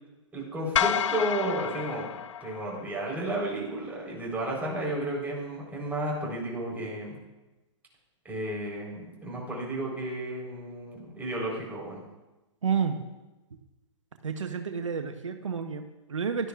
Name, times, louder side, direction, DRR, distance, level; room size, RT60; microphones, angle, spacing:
voice 1, 0.3-2.0 2.4-7.2 8.2-12.0, right 1 dB, 10° right, -3 dB, 4.0 m, -32 dB
sound 1, 0.8-3.1, left 9 dB, 75° left, 0.5 m, -30 dB
voice 2, 12.6-13.0 14.2-16.5, right 6 dB, 90° right, 7 dB, 1.0 m, -30 dB
16.5 x 12.0 x 2.5 m, 1.1 s
hypercardioid pair, 125°, 16 cm